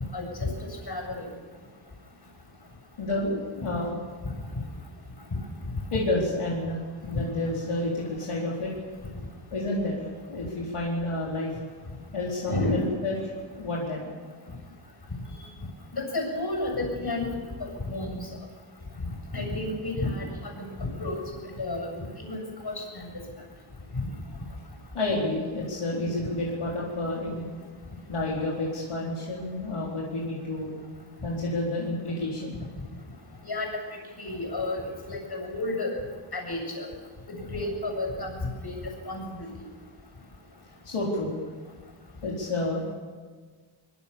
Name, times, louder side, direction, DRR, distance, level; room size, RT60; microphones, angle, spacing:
voice 1, 0.1-0.5 0.9-1.2 5.3-5.4 12.5-12.9 15.9-17.3 17.6-18.1 19.3-21.2 21.6-22.8 23.9-24.0 33.4-33.7 34.2-34.8 35.1-35.9 36.3-36.9 37.3-38.3 38.6-39.5, left 2 dB, 50° left, 3 dB, 7.7 m, -31 dB
voice 2, 3.0-3.9 5.9-8.7 9.5-10.0 10.3-11.5 12.1-13.2 13.6-14.1 15.3-15.5 24.9-27.5 28.1-30.8 31.2-32.5 40.8-41.4 42.2-42.9, left 2 dB, 85° left, -4 dB, 4.5 m, -30 dB
24.5 x 21.5 x 7.1 m, 1.5 s
wide cardioid pair, 70°, 50 cm